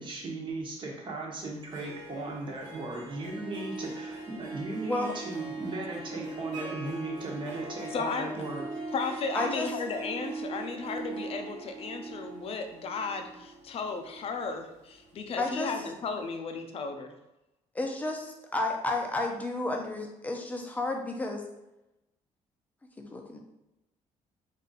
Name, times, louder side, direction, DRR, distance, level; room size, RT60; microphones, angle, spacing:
voice 1, 0.0-8.6, right 2 dB, 40° right, -1 dB, 1.2 m, -37 dB
Harp, 1.5-15.5, right 3 dB, 75° right, 1.3 m, -41 dB
voice 2, 4.8-5.1 9.3-9.7 15.4-15.7 17.7-21.4 23.0-23.4, left 2 dB, 10° left, 2 dB, 0.6 m, -32 dB
voice 3, 7.9-8.3 8.9-17.1, left 4 dB, 50° left, 6 dB, 0.6 m, -34 dB
4.0 x 2.7 x 4.0 m, 0.93 s
cardioid pair, 125°, 13 cm